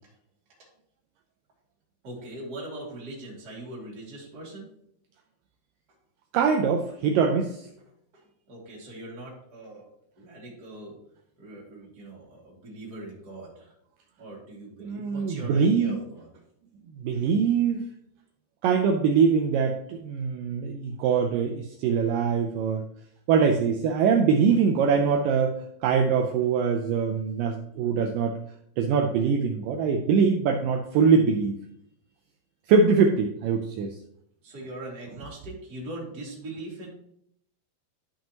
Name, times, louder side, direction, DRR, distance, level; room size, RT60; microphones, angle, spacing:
voice 1, 2.0-4.6 7.0-7.1 8.1-8.2 8.5-9.9 10.2-10.9 11.4-13.7 14.2-16.3 34.4-36.9, right 1 dB, 30° right, -4 dB, 2.5 m, -41 dB
voice 2, 6.3-7.7 14.8-16.0 17.0-17.9 18.6-22.9 23.3-25.5 25.8-28.4 28.8-31.6 32.7-34.0, right 5 dB, 85° right, 4 dB, 1.9 m, -23 dB
12.5 x 5.5 x 2.9 m, 0.73 s
omnidirectional pair, 4.5 m